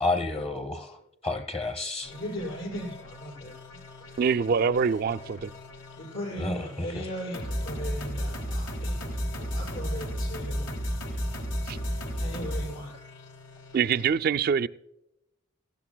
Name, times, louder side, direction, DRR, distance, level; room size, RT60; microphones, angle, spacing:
voice 1, 0.0-2.1 6.4-7.1, left 2 dB, 30° left, 0.8 m, -31 dB
sound 1, 2.0-14.1, equal, 65° left, 2.0 m, -35 dB
voice 2, 2.1-4.2 6.0-10.7 12.2-12.9, equal, 80° left, 5.7 m, -38 dB
voice 3, 4.2-5.5 11.7-11.8 13.7-14.7, right 6 dB, 50° right, 0.3 m, -24 dB
17.0 x 15.0 x 2.3 m
head